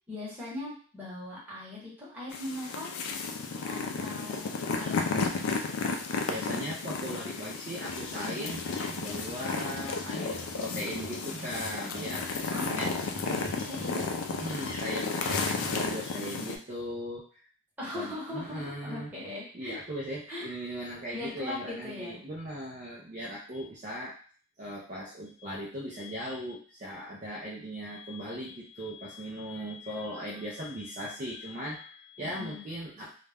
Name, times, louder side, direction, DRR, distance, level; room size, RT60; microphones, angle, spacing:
voice 1, 0.1-3.2 3.7-5.6 12.5-12.8 13.2-14.1 17.8-19.8 20.3-20.5 21.1-22.2 32.2-32.6, left 2 dB, 10° right, -8 dB, 1.0 m, -39 dB
sound 1, 2.3-16.6, left 4 dB, 90° left, 0.4 m, -33 dB
voice 2, 6.3-8.6 9.0-12.3 12.7-13.0 14.3-17.4 17.9-19.1 19.5-24.2 24.6-33.1, equal, 35° right, -5 dB, 0.4 m, -38 dB
sound 2, 7.8-15.9, left 1 dB, 60° left, 0.7 m, -43 dB
2.4 x 2.1 x 3.3 m, 0.43 s
head